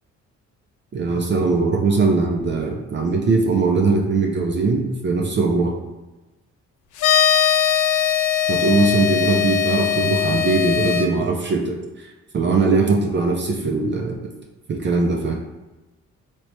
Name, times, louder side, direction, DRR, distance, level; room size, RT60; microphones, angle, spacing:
voice 1, 0.9-5.7 8.5-12.1 12.3-14.2 14.7-15.3, right 3 dB, 40° right, 1 dB, 0.5 m, -20 dB
sound 1, 7.0-11.1, left 10 dB, 80° left, 0.5 m, -20 dB
3.2 x 2.9 x 2.9 m, 1.1 s
cardioid pair, 90°, 30 cm